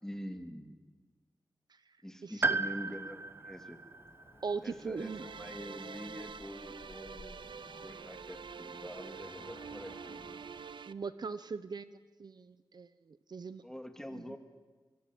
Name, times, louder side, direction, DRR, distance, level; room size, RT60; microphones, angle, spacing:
voice 1, 0.0-0.8 2.0-3.8 4.6-10.4 13.6-14.4, equal, 5° left, 7 dB, 2.4 m, -45 dB
voice 2, 2.2-2.6 4.4-5.2 10.9-11.9 12.2-13.6 14.1-14.4, right 5 dB, 60° right, 14 dB, 0.9 m, -40 dB
Piano, 2.4-6.6 7.8-7.9, right 3 dB, 30° right, 0.7 m, -37 dB
Cricket / Motor vehicle (road), 3.9-10.8, left 3 dB, 55° left, 2.7 m, -56 dB
sound 1, 5.0-10.9, right 6 dB, 85° right, 0.8 m, -47 dB
24.5 x 23.5 x 9.2 m, 1.3 s
wide cardioid pair, 120°, 8 cm